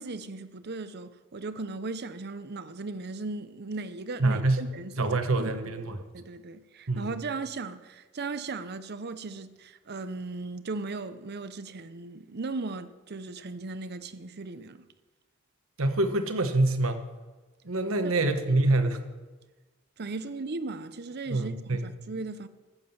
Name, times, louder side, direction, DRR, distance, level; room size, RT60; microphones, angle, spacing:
voice 1, 0.0-5.6 6.1-14.8 20.0-22.5, right 3 dB, 50° right, 0.7 m, -37 dB
voice 2, 4.2-4.6 5.0-6.0 6.9-7.1 15.8-17.0 17.6-19.0 21.3-21.8, right 2 dB, 70° right, 1.2 m, -25 dB
14.5 x 7.7 x 7.0 m
head